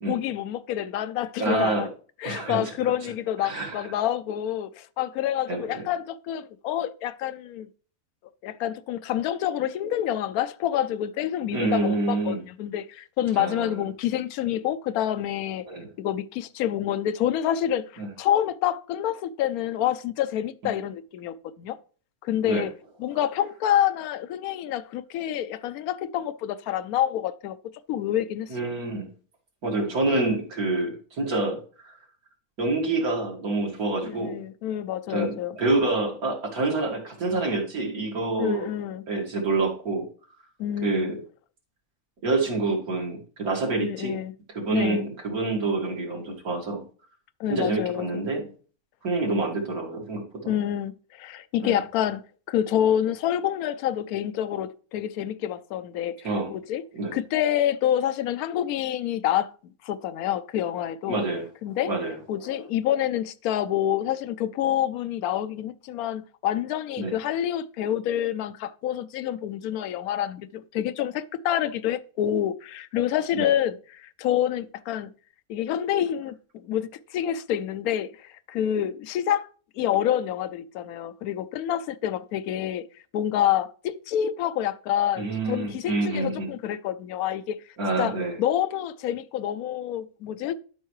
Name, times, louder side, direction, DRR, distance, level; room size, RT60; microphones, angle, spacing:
voice 1, 0.1-1.9 2.2-7.7 8.4-15.7 16.0-21.8 22.2-22.7 23.0-27.6 27.9-28.7 34.1-35.6 38.4-39.0 40.6-41.1 43.8-44.3 44.7-45.1 47.4-48.2 50.5-52.2 52.5-56.8 57.1-61.2 61.6-61.9 62.3-75.1 75.5-79.5 79.7-82.9 83.1-87.6 88.0-90.5, left 11 dB, 80° left, 1.1 m, -27 dB
voice 2, 1.4-1.9 2.2-2.7 3.0-3.1 3.4-3.9 5.5-5.8 11.5-12.4 13.3-13.8 15.7-15.9 18.0-18.1 22.4-22.6 28.5-29.1 29.6-31.9 32.6-34.4 35.1-38.7 39.1-40.1 40.8-41.2 42.2-44.2 44.5-46.8 47.5-48.5 49.0-50.6 51.6-51.8 56.2-56.5 56.9-57.1 61.1-61.4 61.8-62.6 67.0-67.1 73.3-73.5 85.2-86.5 87.8-88.4, right 2 dB, 80° right, 2.6 m, -27 dB
11.5 x 5.5 x 3.1 m
omnidirectional pair, 1.5 m